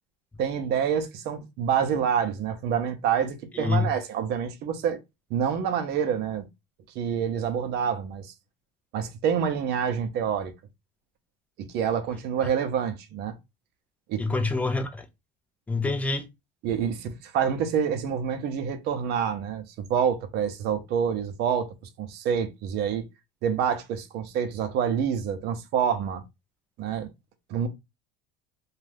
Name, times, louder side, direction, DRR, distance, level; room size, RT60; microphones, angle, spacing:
voice 1, 0.4-5.0 5.3-6.4 6.9-8.3 8.9-10.5 11.7-13.3 14.1-14.2 16.6-19.6 19.9-21.7 22.0-23.0 23.4-26.2 26.8-27.1 27.5-27.7, right 8 dB, 55° right, 0.6 m, -27 dB
voice 2, 3.5-3.9 14.2-15.1 15.7-16.2, left 3 dB, 5° left, 0.3 m, -26 dB
2.6 x 2.3 x 3.3 m
cardioid pair, 145°, 20 cm